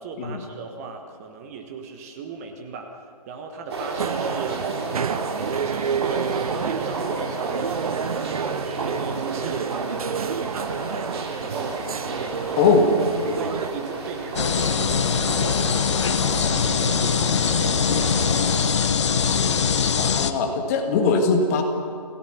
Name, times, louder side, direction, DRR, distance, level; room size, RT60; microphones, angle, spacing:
voice 1, 0.0-2.9 3.3-4.7 5.0-11.0 11.4-11.8 12.0-12.6 13.3-15.9 16.4-18.8, right 5 dB, 20° right, 4 dB, 1.3 m, -37 dB
sound 1, 3.7-18.7, right 3 dB, 40° right, 3.5 m, -32 dB
sound 2, 4.0-13.7, right 7 dB, 60° right, 0.6 m, -29 dB
voice 2, 12.6-12.9 20.0-21.6, left 4 dB, 20° left, 4 dB, 1.6 m, -20 dB
sound 3, 14.4-20.3, left 6 dB, 45° left, 1.1 m, -22 dB
28.0 x 16.5 x 5.8 m, 2.3 s
figure-of-eight pair, 150°, 21 cm